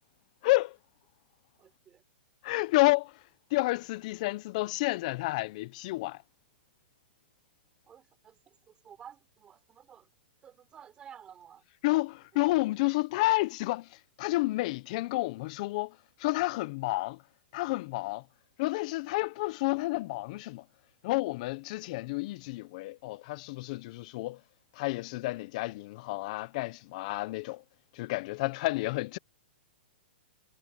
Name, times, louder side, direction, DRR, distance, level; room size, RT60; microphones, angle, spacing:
voice 1, 0.4-0.8 2.4-3.1 3.5-6.2 11.8-13.9 14.2-15.9 16.2-17.2 17.5-18.2 18.6-20.6 21.0-24.4 24.8-27.6 27.9-29.2, left 21 dB, 45° left, 0.7 m, -30 dB
voice 2, 1.6-2.0 7.9-10.1 10.4-11.6 12.3-12.5 28.7-28.9, right 8 dB, 15° right, 4.2 m, -53 dB
hypercardioid pair, 150°, 6 cm